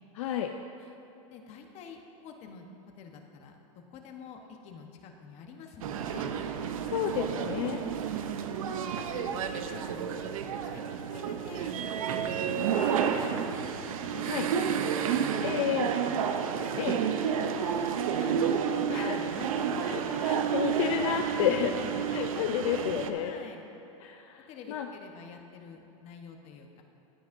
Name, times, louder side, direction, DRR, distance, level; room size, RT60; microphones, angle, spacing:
voice 1, 0.2-0.5 6.9-7.8 14.2-14.5 15.4-15.9 16.8-17.0 18.9-19.2 19.8-21.7 22.1-23.3 24.0-24.9, left 10 dB, 65° left, 5 dB, 0.5 m, -31 dB
voice 2, 1.3-3.6 3.9-6.3 7.3-10.1 10.6-11.8 12.2-13.6 14.0-15.2 15.5-16.7 17.0-17.1 17.4-20.3 21.4-22.1 23.1-23.7 24.5-26.8, left 5 dB, 40° left, 4 dB, 1.0 m, -47 dB
sound 1, 5.8-23.1, right 7 dB, 75° right, 0.7 m, -30 dB
15.0 x 9.3 x 2.6 m, 3.0 s
hypercardioid pair, 125°, 18 cm